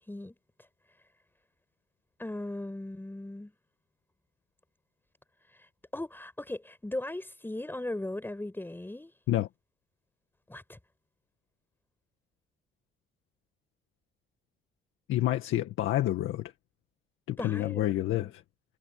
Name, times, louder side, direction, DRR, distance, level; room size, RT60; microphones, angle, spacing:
voice 1, 0.1-0.7 2.2-3.5 5.5-9.1 10.5-10.8 17.4-18.3, left 1 dB, 10° left, 5.7 m, -38 dB
voice 2, 15.1-16.5 17.3-18.4, left 14 dB, 85° left, 2.0 m, -28 dB
cardioid pair, 90°, 20 cm